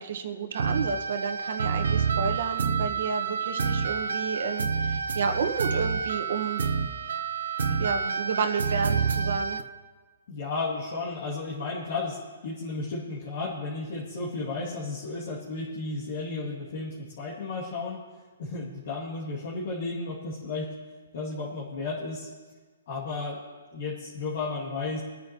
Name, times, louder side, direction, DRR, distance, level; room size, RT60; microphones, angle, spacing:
voice 1, 0.0-6.6 7.8-9.6, right 6 dB, 60° right, 6 dB, 1.4 m, -31 dB
sound 1, 0.5-9.6, right 5 dB, 80° right, 0.8 m, -28 dB
voice 2, 10.3-12.2 12.4-18.0 18.4-20.7 21.1-22.3 22.9-23.4 23.7-25.0, left 3 dB, 50° left, -5 dB, 2.4 m, -33 dB
25.0 x 9.3 x 3.0 m, 1.4 s
hypercardioid pair, 155°, 0 cm